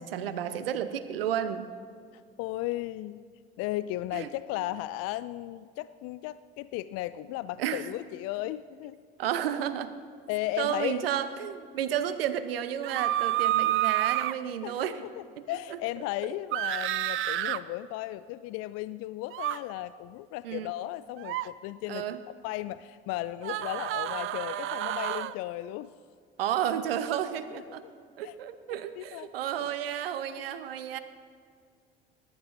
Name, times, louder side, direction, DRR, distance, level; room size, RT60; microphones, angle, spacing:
voice 1, 0.0-1.7 4.1-4.3 7.6-7.9 9.2-9.9 10.6-15.0 15.7-15.8 20.4-20.7 21.9-22.2 26.4-27.8 28.2-31.0, right 10 dB, 80° right, 12 dB, 0.7 m, -32 dB
voice 2, 2.1-3.2 3.6-9.0 10.3-11.1 14.6-22.1 22.4-25.9 27.4-27.9 28.2-28.3 29.0-29.3 29.6-29.7 30.4-30.5, left 15 dB, 55° left, 15 dB, 0.4 m, -35 dB
sound 1, 12.8-14.3 16.5-17.6 19.3-19.6 21.2-21.5 23.4-25.3 27.1-27.2, right 14 dB, 45° right, 0.5 m, -29 dB
20.0 x 11.0 x 2.6 m, 2.2 s
figure-of-eight pair, 55°, 29 cm